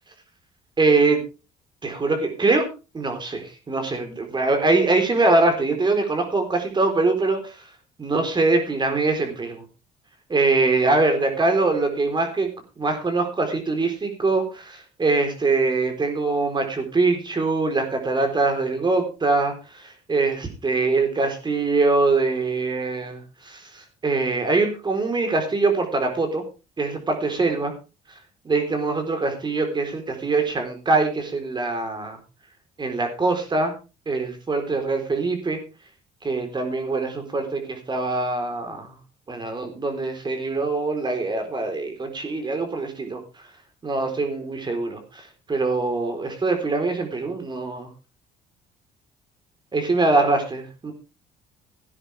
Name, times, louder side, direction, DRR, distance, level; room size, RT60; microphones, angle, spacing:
voice 1, 0.8-1.2 1.8-2.7 2.9-7.6 8.0-9.6 10.3-12.5 12.8-26.4 26.8-27.7 28.4-32.2 32.8-33.7 34.1-35.6 36.2-38.9 39.3-43.2 43.8-47.9 49.7-50.9, right 3 dB, 25° right, 5 dB, 4.1 m, -23 dB
17.0 x 10.0 x 3.5 m, 0.31 s
cardioid pair, 110°, 17 cm